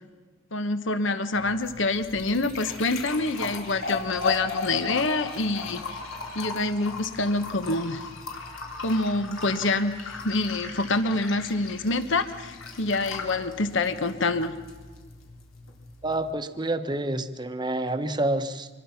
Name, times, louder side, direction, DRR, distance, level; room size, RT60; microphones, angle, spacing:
voice 1, 0.5-6.0 6.3-8.1 8.8-14.6, left 2 dB, 65° left, 10 dB, 1.1 m, -26 dB
sound 1, 1.3-16.3, left 4 dB, 85° left, 3.8 m, -37 dB
voice 2, 16.0-18.7, right 2 dB, 20° right, 9 dB, 1.0 m, -28 dB
25.5 x 21.0 x 5.8 m, 1.4 s
head